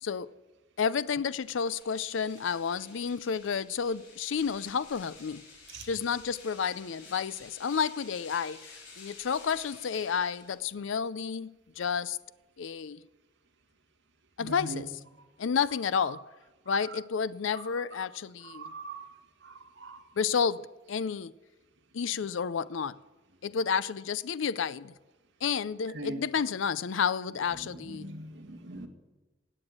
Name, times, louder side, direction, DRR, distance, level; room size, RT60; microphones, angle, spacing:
voice 1, 0.8-5.4 5.8-8.7 9.0-12.2 12.6-13.0 14.4-14.9 15.4-16.2 16.7-18.7 20.2-21.3 21.9-23.0 23.4-24.9 25.4-28.1, left 6 dB, 80° left, 0.5 m, -31 dB
sound 1, 1.2-10.9, left 4 dB, 60° left, 4.8 m, -52 dB
voice 2, 14.4-14.8 17.6-17.7 18.4-19.1 19.4-20.0 25.9-26.2 27.9-28.9, right 1 dB, 65° right, 2.0 m, -41 dB
17.5 x 8.1 x 8.7 m
head